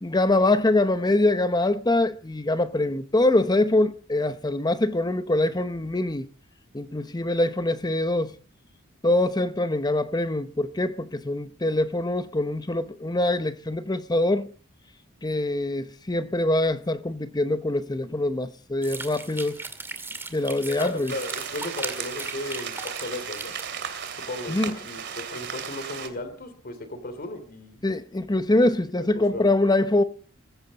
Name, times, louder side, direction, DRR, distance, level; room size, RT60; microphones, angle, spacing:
voice 1, 0.0-6.3 6.7-8.3 9.0-14.5 15.2-19.6 20.3-21.1 24.5-24.8 27.8-30.0, left 2 dB, 20° left, 0.8 m, -24 dB
sound 1, 18.8-24.2, right 3 dB, 10° right, 2.3 m, -38 dB
voice 2, 20.8-23.5 24.1-27.8 29.0-29.5, left 1 dB, 45° left, 2.9 m, -35 dB
sound 2, 21.1-26.1, right 7 dB, 55° right, 2.7 m, -35 dB
22.5 x 15.0 x 4.1 m
head